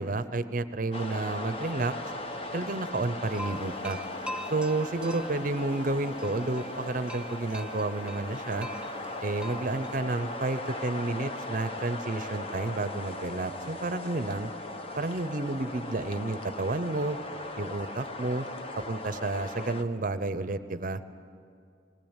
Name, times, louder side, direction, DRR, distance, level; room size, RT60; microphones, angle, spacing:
voice 1, 0.0-1.9 2.5-4.0 4.5-8.7 9.2-14.5 14.9-17.2 17.6-18.4 18.9-21.0, right 2 dB, 45° right, 12 dB, 0.7 m, -31 dB
sound 1, 0.9-19.8, left 2 dB, 30° left, 1.0 m, -38 dB
sound 2, 3.2-10.0, equal, 5° right, 0.6 m, -44 dB
20.0 x 19.0 x 8.9 m, 2.4 s
head